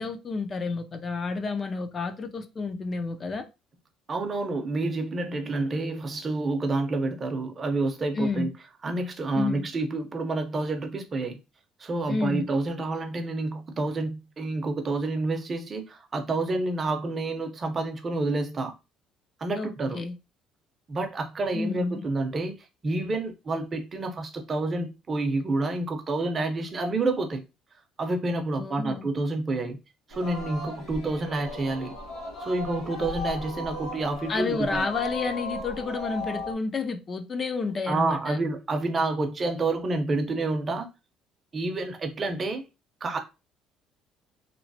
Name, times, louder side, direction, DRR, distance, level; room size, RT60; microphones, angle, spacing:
voice 1, 0.0-3.5 8.1-8.5 9.3-9.7 12.1-12.5 19.5-20.1 21.5-22.0 28.6-29.1 34.3-38.4, left 4 dB, 30° left, 0.4 m, -30 dB
voice 2, 4.1-8.5 8.8-11.4 11.8-18.7 19.4-20.0 20.9-22.6 22.8-27.4 28.0-29.8 30.1-31.9 32.4-34.8 37.9-40.9 41.5-42.6 43.0-43.2, right 2 dB, 30° right, 0.6 m, -29 dB
Singing, 30.1-36.5, left 2 dB, 65° left, 1.5 m, -36 dB
3.0 x 2.0 x 2.6 m
cardioid pair, 135°, 0 cm